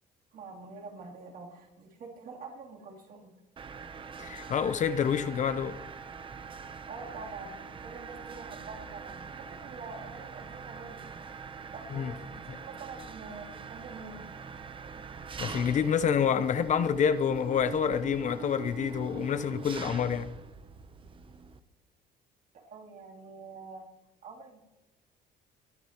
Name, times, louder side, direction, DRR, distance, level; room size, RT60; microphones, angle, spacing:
voice 1, 0.3-3.3 6.9-11.1 11.7-14.3 22.5-23.9 24.2-24.6, right 4 dB, 55° right, 3.2 m, -46 dB
Mechanisms, 3.6-21.6, right 5 dB, 30° right, 0.8 m, -43 dB
voice 2, 4.2-5.8 11.9-12.1 15.4-20.3, left 7 dB, 45° left, 0.7 m, -28 dB
20.5 x 11.0 x 3.0 m
cardioid pair, 110°, 17 cm